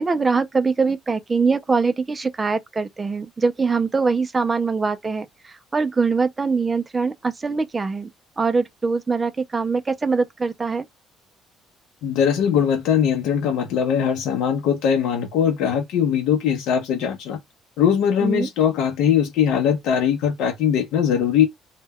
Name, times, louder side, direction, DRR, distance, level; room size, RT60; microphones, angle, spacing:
voice 1, 0.0-8.1 8.4-10.9 18.2-18.5, right 4 dB, 15° right, 0.3 m, -23 dB
voice 2, 12.0-17.4 17.8-21.5, left 8 dB, 85° left, 0.5 m, -20 dB
2.1 x 2.1 x 3.4 m
cardioid pair, 170°, 0 cm